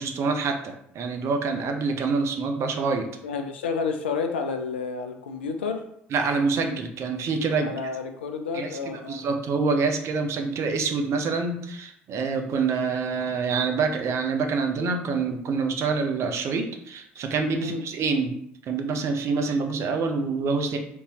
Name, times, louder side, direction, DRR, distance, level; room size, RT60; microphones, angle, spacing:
voice 1, 0.0-3.1 6.1-7.7 8.5-18.4 18.7-20.8, right 4 dB, 50° right, 5 dB, 0.6 m, -26 dB
voice 2, 3.2-5.9 7.6-9.2 17.6-17.8, left 5 dB, 90° left, 6 dB, 0.4 m, -30 dB
3.6 x 2.7 x 2.9 m, 0.70 s
hypercardioid pair, 60°, 6 cm